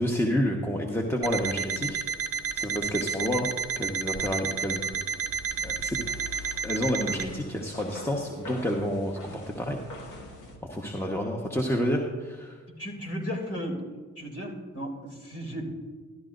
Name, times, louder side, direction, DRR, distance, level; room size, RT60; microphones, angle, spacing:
voice 1, 0.0-2.0 2.5-3.5 3.8-4.9 5.6-6.0 6.6-9.8 10.7-12.6, equal, 10° left, 0 dB, 1.3 m, -29 dB
Alarm, 1.2-7.3, right 6 dB, 50° right, 0.8 m, -31 dB
sound 1, 4.8-10.6, left 2 dB, 75° left, 1.8 m, -44 dB
voice 2, 12.8-13.8 14.2-15.7, equal, 50° left, 0 dB, 3.1 m, -35 dB
13.0 x 12.5 x 2.6 m, 1.4 s
supercardioid pair, 50°, 31 cm